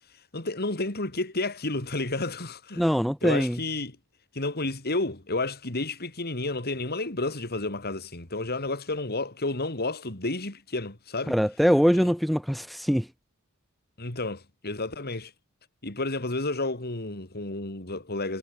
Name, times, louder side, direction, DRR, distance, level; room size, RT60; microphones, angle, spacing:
voice 1, 0.3-4.0 4.3-11.4 14.0-15.3 15.8-18.4, left 2 dB, 45° left, 3.7 m, -31 dB
voice 2, 2.8-3.6 11.3-13.1, equal, ahead, 0.3 m, -23 dB
head